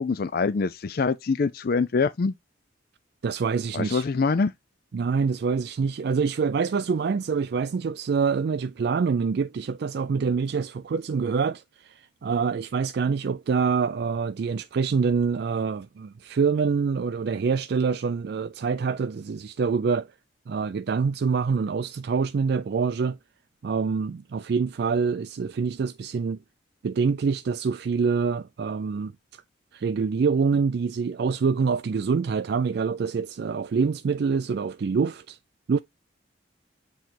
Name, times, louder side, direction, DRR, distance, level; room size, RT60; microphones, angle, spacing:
voice 1, 0.0-2.3 3.7-4.5, left 4 dB, 50° left, 0.4 m, -24 dB
voice 2, 3.2-4.0 4.9-20.1 20.5-23.2 23.6-26.4 26.8-29.4 29.7-35.4 35.7-35.8, right 5 dB, 55° right, 0.3 m, -26 dB
8.0 x 3.1 x 4.3 m
head